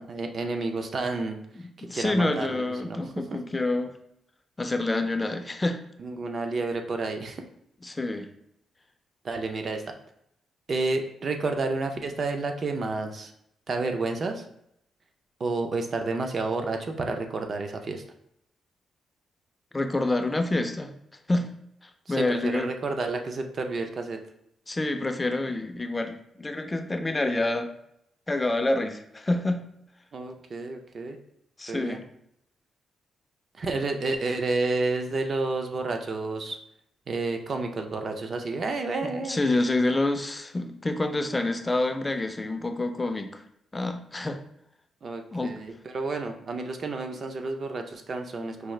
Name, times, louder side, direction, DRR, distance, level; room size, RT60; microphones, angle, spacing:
voice 1, 0.0-1.4 1.8-3.0 3.3-3.4 6.0-7.4 9.2-9.8 10.7-13.3 13.7-14.4 15.4-18.0 22.1-24.2 30.1-31.2 31.7-32.0 33.6-36.6 37.1-39.4 45.0-48.7, right 3 dB, 40° right, 5 dB, 0.5 m, -30 dB
voice 2, 1.8-3.9 4.6-5.8 7.8-8.3 19.7-20.9 21.3-21.5 22.1-22.7 24.7-27.7 28.3-29.7 31.6-32.0 39.3-43.4 43.7-44.4 45.3-45.5, left 2 dB, 15° left, 6 dB, 0.4 m, -27 dB
4.7 x 2.3 x 3.2 m, 0.75 s
cardioid pair, 125°, 0 cm